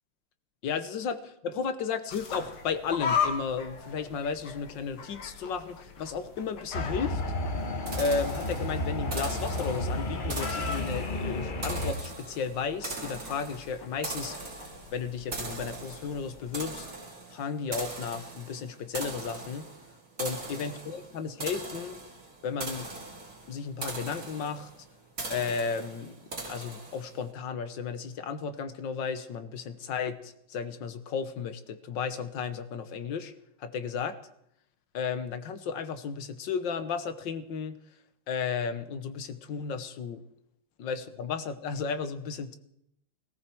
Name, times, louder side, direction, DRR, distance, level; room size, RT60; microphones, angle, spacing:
voice 1, 0.6-7.2 8.0-14.3 14.9-16.9 17.3-19.7 20.2-22.0 22.4-22.9 23.5-24.7 25.3-33.3 33.6-34.2 34.9-37.7 38.3-40.2 40.8-42.6, left 5 dB, 65° left, 11 dB, 1.6 m, -34 dB
sound 1, 2.1-16.8, left 6 dB, 80° left, 2.7 m, -39 dB
sound 2, 6.7-11.9, left 1 dB, 35° left, 0.8 m, -32 dB
sound 3, 7.9-27.2, right 3 dB, 40° right, 3.0 m, -41 dB
18.0 x 17.5 x 4.6 m, 0.73 s
omnidirectional pair, 2.3 m